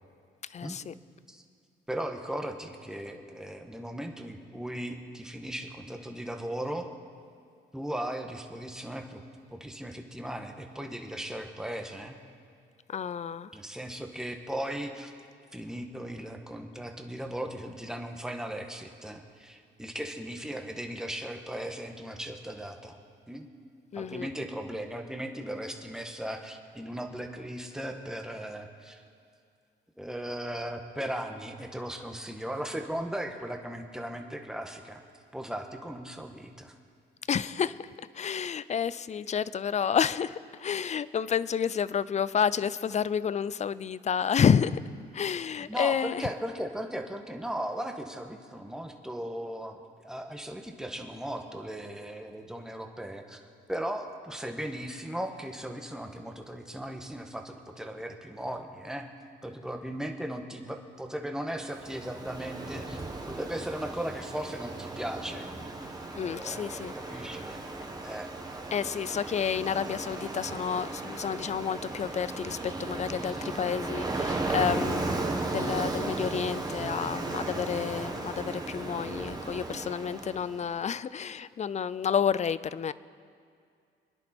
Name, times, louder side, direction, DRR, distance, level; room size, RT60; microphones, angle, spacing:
voice 1, 0.5-0.9 12.9-13.5 23.9-24.3 37.3-37.9 38.1-44.8 45.1-46.3 66.2-67.3 68.7-82.9, left 7 dB, 35° left, 17 dB, 0.5 m, -30 dB
voice 2, 1.9-6.9 7.7-9.2 9.5-12.2 13.5-15.1 15.5-23.0 23.3-23.5 23.9-29.0 30.0-35.0 35.3-36.7 45.6-53.4 53.7-59.1 59.4-65.5 66.3-67.6 68.0-68.3 73.4-73.5, right 1 dB, 5° right, 4 dB, 1.5 m, -37 dB
Ocean, 61.6-80.7, right 2 dB, 20° right, 1.6 m, -35 dB
25.0 x 10.5 x 4.5 m, 2.3 s
cardioid pair, 90°, 20 cm